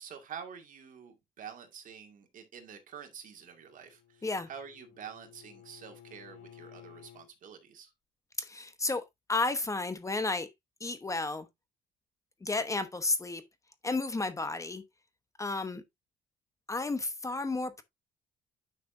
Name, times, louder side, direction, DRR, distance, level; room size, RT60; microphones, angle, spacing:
voice 1, 0.0-7.9, right 7 dB, 50° right, 2.3 m, -47 dB
Bowed string instrument, 3.5-7.3, left 10 dB, 60° left, 2.6 m, -55 dB
voice 2, 8.4-10.5 10.8-11.5 12.4-13.4 13.8-14.8 15.4-15.8 16.7-17.8, left 3 dB, 20° left, 1.0 m, -32 dB
9.7 x 6.0 x 2.7 m
cardioid pair, 110°, 17 cm